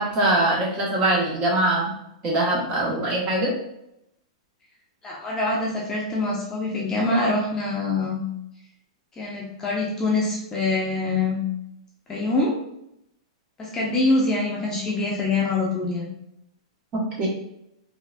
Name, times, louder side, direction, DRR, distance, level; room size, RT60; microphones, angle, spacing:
voice 1, 0.0-1.9 2.2-3.5 17.2-17.3, right 1 dB, 30° right, -3 dB, 1.0 m, -22 dB
voice 2, 5.0-8.2 9.2-11.4 12.1-12.6 13.6-16.1, left 2 dB, 15° left, -3 dB, 0.7 m, -24 dB
3.7 x 2.5 x 2.2 m, 0.80 s
hypercardioid pair, 135°, 3 cm